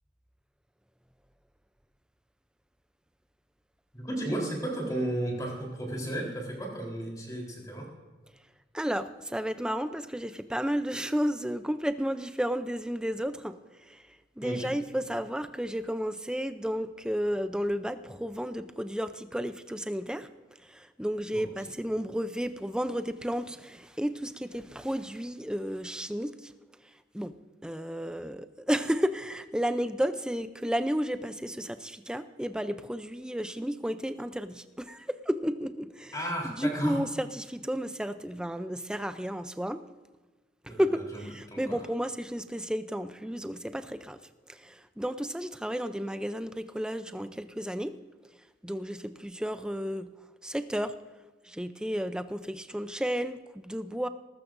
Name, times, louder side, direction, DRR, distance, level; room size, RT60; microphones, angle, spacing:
voice 1, 3.9-7.9 14.4-14.7 21.3-21.4 36.1-37.0 40.7-40.8 41.5-41.8, right 1 dB, 20° left, -1 dB, 3.8 m, -33 dB
voice 2, 8.7-14.0 14.4-20.3 20.6-26.5 27.1-27.3 27.6-36.1 36.4-39.8 40.6-44.2 44.5-48.0 48.6-50.1 50.4-50.9 51.4-54.1, equal, 5° right, 11 dB, 0.5 m, -32 dB
18.5 x 15.0 x 2.6 m, 1.3 s
head